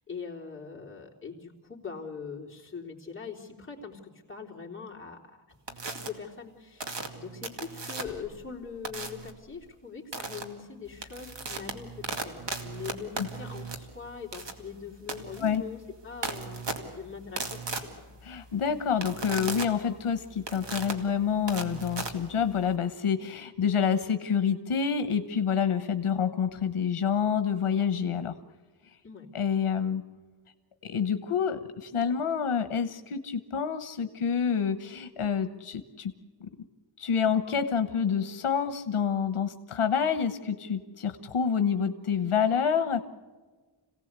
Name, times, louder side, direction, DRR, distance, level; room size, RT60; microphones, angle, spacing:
voice 1, 0.1-18.1 29.0-29.3, left 6 dB, 25° left, -3 dB, 3.7 m, -42 dB
sound 1, 5.7-6.1 6.8-8.3 8.8-9.3 10.1-10.4 10.9-22.8, right 3 dB, 60° right, 2.4 m, -37 dB
voice 2, 18.2-28.3 29.3-30.0 30.8-36.1 36.4-36.5 37.0-43.0, left 7 dB, 85° left, 9 dB, 1.2 m, -28 dB
27.0 x 17.5 x 8.2 m, 1.4 s
wide cardioid pair, 140°, 49 cm